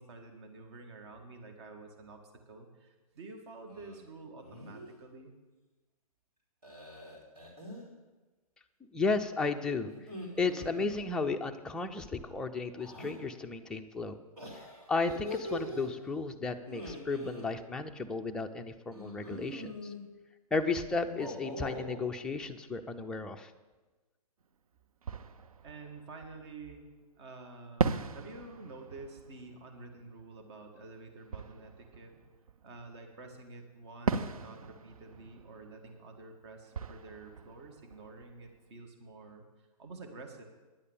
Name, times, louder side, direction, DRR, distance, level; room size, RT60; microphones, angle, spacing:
voice 1, 0.0-5.3 25.6-26.9 27.2-32.2 32.6-40.4, right 3 dB, 45° right, 4 dB, 1.7 m, -49 dB
sound 1, 3.7-4.0 4.4-4.9 6.6-7.9 9.9-11.3 12.8-13.2 14.4-15.9 16.6-17.4 18.9-20.0 21.0-22.0, left 1 dB, 90° right, 3.7 m, -43 dB
voice 2, 8.9-9.9 10.4-14.2 14.9-19.9 20.5-23.5, left 4 dB, 5° left, 4 dB, 0.4 m, -34 dB
Fireworks, 24.4-24.5 25.0-27.0 27.8-33.1 34.1-38.8, right 4 dB, 70° right, 0.6 m, -39 dB
10.5 x 8.2 x 7.1 m, 1.2 s
figure-of-eight pair, 125°, 19 cm